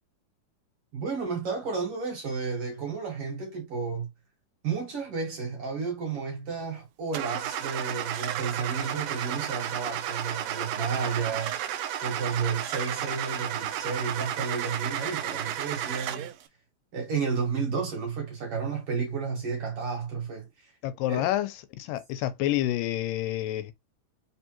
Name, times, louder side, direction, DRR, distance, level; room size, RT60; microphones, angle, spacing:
voice 1, 0.9-4.1 4.6-11.6 12.0-16.3 16.9-20.7 21.1-21.3, right 5 dB, 50° right, 2.1 m, -32 dB
Car / Engine starting, 7.1-16.4, right 10 dB, 85° right, 1.5 m, -33 dB
voice 2, 20.8-23.7, left 13 dB, 85° left, 2.2 m, -28 dB
4.9 x 3.5 x 2.9 m
omnidirectional pair, 3.9 m